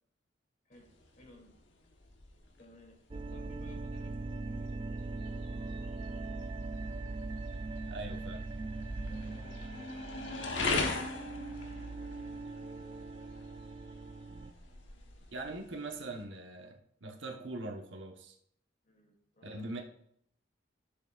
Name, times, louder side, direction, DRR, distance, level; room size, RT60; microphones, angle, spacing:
voice 1, 0.6-1.6 2.6-4.8 8.9-10.1 11.0-11.7 18.8-19.8, left 1 dB, 45° left, 0 dB, 2.8 m, -58 dB
sound 1, 0.7-16.2, left 3 dB, 80° left, 1.3 m, -41 dB
sound 2, 3.1-14.5, right 3 dB, 25° right, 0.4 m, -41 dB
voice 2, 7.9-8.4 15.3-18.4 19.4-19.8, right 2 dB, 75° right, 3 dB, 1.2 m, -42 dB
14.5 x 6.7 x 2.5 m, 0.68 s
head